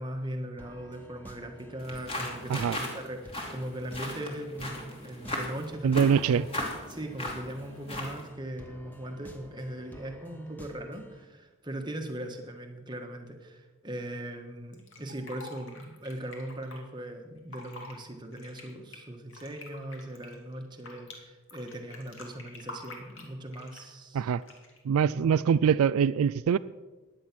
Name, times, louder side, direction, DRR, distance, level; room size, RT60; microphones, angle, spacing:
voice 1, 0.0-6.3 6.9-24.3 25.1-25.4, right 1 dB, 20° right, 4 dB, 1.4 m, -39 dB
sound 1, 0.6-11.3, equal, 10° left, 1.0 m, -51 dB
sound 2, 1.8-8.3, left 1 dB, 25° left, 2.6 m, -37 dB
voice 2, 5.8-6.5 24.1-24.4 24.8-26.6, right 7 dB, 75° right, 15 dB, 0.3 m, -24 dB
Fill (with liquid), 14.7-16.8 17.4-18.0 18.3-21.2 21.5-23.9 24.4-24.8, left 2 dB, 60° left, 2.7 m, -46 dB
15.5 x 10.0 x 6.1 m, 1.2 s
head